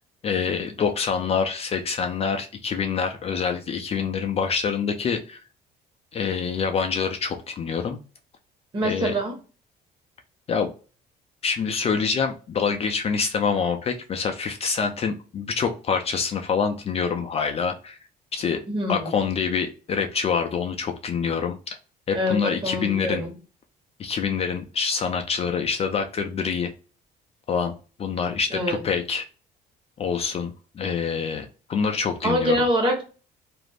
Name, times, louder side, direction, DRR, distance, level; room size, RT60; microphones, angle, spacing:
voice 1, 0.2-5.4 6.1-8.0 8.8-9.1 10.5-10.7 11.4-18.0 18.3-18.6 18.9-21.6 22.1-23.2 24.0-26.7 27.5-27.7 28.0-29.2 30.0-32.6, left 6 dB, 35° left, 4 dB, 0.4 m, -26 dB
voice 2, 8.7-9.4 18.7-19.1 22.1-23.3 28.5-28.8 32.2-33.0, equal, 30° right, 1 dB, 1.1 m, -25 dB
2.4 x 2.0 x 3.3 m, 0.35 s
cardioid pair, 110°, 17 cm